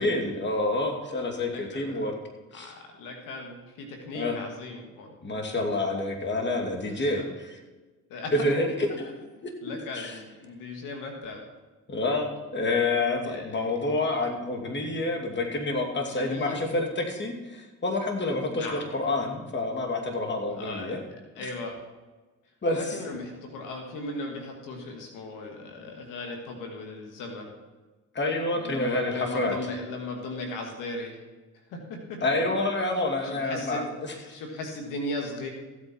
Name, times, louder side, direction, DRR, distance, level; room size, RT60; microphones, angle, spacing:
voice 1, 0.0-2.2 2.5-2.7 4.1-4.4 5.2-7.6 8.3-9.1 9.7-10.1 11.9-21.0 21.4-21.5 22.6-22.8 28.1-29.6 32.2-34.2, left 2 dB, 35° left, 3 dB, 2.6 m, -28 dB
voice 2, 1.5-2.0 2.5-5.2 6.9-7.2 8.1-8.3 9.6-11.4 12.7-12.8 13.2-13.7 15.9-16.6 18.4-18.9 20.5-21.0 21.4-21.8 22.7-27.5 28.5-31.2 31.7-32.2 33.2-33.9 34.3-35.5, left 2 dB, 85° left, 2 dB, 2.3 m, -37 dB
15.0 x 8.7 x 4.6 m, 1.2 s
supercardioid pair, 75°, 31 cm